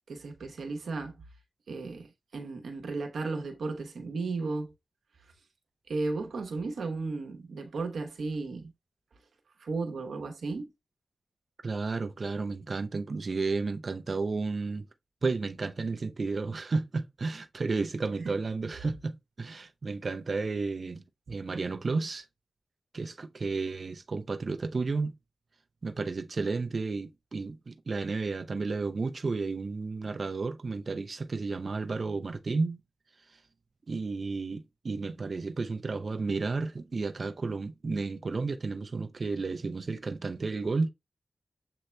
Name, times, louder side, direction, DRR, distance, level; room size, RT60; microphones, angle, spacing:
voice 1, 0.1-1.2 1.7-4.7 5.9-8.7 9.6-10.7 18.2-18.3, right 3 dB, 80° right, 1.0 m, -34 dB
voice 2, 11.6-14.9 15.2-22.2 22.9-25.1 25.8-32.8 33.9-40.9, right 3 dB, 55° right, 0.6 m, -32 dB
7.7 x 2.8 x 2.2 m
cardioid pair, 50°, 0 cm